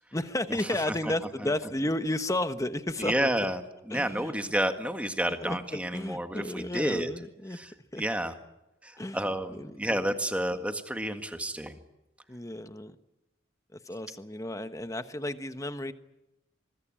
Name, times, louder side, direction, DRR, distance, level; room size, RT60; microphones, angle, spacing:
voice 1, 0.1-3.3 3.9-4.3 5.4-7.6 7.9-8.0 9.0-10.1 12.3-12.9 13.7-15.9, left 1 dB, 15° left, 10 dB, 1.1 m, -33 dB
voice 2, 3.0-3.6 3.9-7.1 7.5-7.7 8.0-8.3 8.8-11.8, right 1 dB, 5° right, 7 dB, 1.7 m, -30 dB
25.0 x 21.5 x 8.9 m, 0.94 s
head